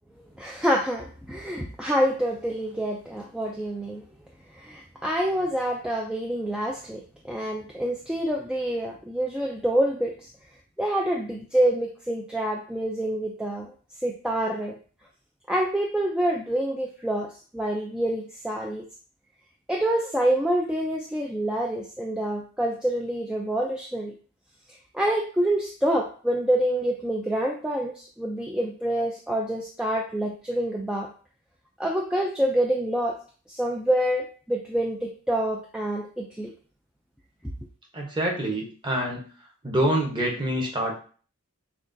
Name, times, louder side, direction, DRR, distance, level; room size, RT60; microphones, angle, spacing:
voice 1, 0.4-4.0 4.5-10.1 10.8-13.7 14.0-14.8 15.5-17.3 17.5-18.8 19.7-24.1 24.9-31.1 31.8-33.2 33.5-36.5, right 1 dB, 5° right, -1 dB, 0.3 m, -27 dB
voice 2, 37.9-39.2 39.6-41.0, right 1 dB, 20° right, 0 dB, 0.9 m, -26 dB
5.8 x 2.3 x 2.6 m, 0.41 s
head